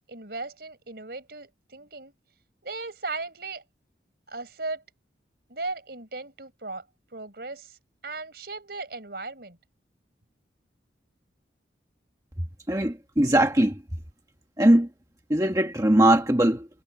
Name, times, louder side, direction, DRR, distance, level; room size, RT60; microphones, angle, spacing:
voice 1, 0.1-2.1 2.6-3.6 4.3-4.8 5.5-6.8 7.1-7.8 8.0-9.6, right 3 dB, 55° right, 5.0 m, -37 dB
voice 2, 12.7-13.7 14.6-14.9 15.3-16.7, right 1 dB, 20° right, 1.3 m, -20 dB
head